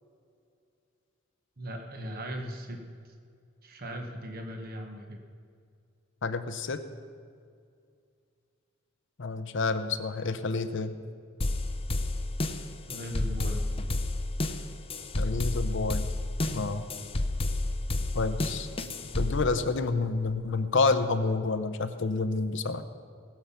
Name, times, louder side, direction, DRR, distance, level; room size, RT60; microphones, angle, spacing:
voice 1, 1.6-2.9 3.6-5.2 12.9-13.6, equal, 50° right, 3 dB, 1.3 m, -38 dB
voice 2, 6.2-6.8 9.2-10.9 15.2-16.1 16.5-16.8 18.1-18.7 19.2-22.8, left 3 dB, 65° left, 9 dB, 0.7 m, -29 dB
sound 1, 11.4-19.4, left 2 dB, 30° left, 0.6 m, -30 dB
19.0 x 7.3 x 5.7 m, 2.2 s
head